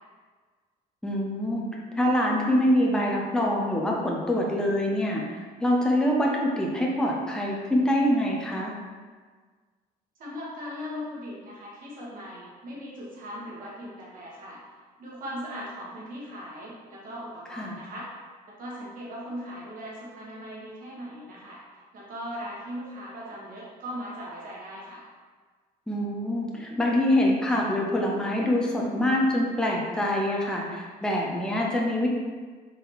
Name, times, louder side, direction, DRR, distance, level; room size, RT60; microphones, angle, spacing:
voice 1, 1.0-1.7 2.0-5.2 5.6-8.7 17.5-17.8 25.9-32.1, left 1 dB, 5° left, -2 dB, 0.6 m, -25 dB
voice 2, 10.2-14.6 15.0-18.1 18.6-21.6 21.9-25.0, equal, 55° right, -5 dB, 1.3 m, -39 dB
3.8 x 3.5 x 3.0 m, 1.5 s
cardioid pair, 110°, 17 cm